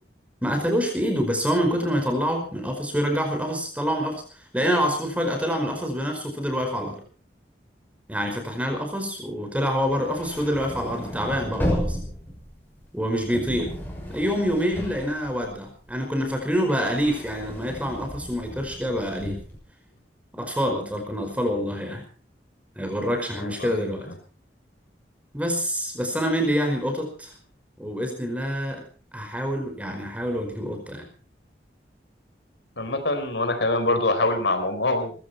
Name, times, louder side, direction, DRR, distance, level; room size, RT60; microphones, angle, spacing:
voice 1, 0.4-4.2 4.5-7.0 8.1-12.0 12.9-13.8 14.1-19.4 20.3-22.0 22.8-24.1 25.3-27.3 27.8-28.8 29.1-31.0, equal, 10° right, 4 dB, 5.0 m, -26 dB
sound 1, 9.8-15.9 16.3-19.6, equal, 10° left, 6.4 m, -33 dB
voice 2, 23.3-23.8 32.8-35.1, left 2 dB, 80° left, 8 dB, 4.2 m, -24 dB
20.5 x 16.0 x 4.4 m, 0.39 s
head